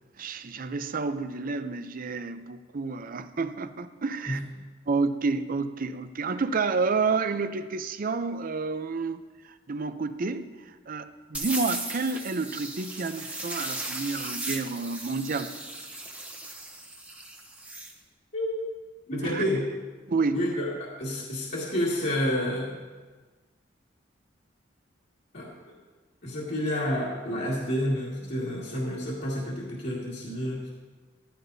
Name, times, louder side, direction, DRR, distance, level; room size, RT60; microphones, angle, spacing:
voice 1, 0.2-4.4 4.9-15.5 19.2-19.4 20.1-20.4, right 4 dB, 50° right, 11 dB, 0.6 m, -30 dB
sound 1, 11.3-17.9, right 2 dB, 10° right, 0.9 m, -37 dB
voice 2, 19.1-19.6 20.3-22.8 25.3-25.8 26.2-30.7, left 1 dB, 55° left, -6 dB, 2.1 m, -29 dB
15.0 x 13.5 x 2.7 m, 1.3 s
head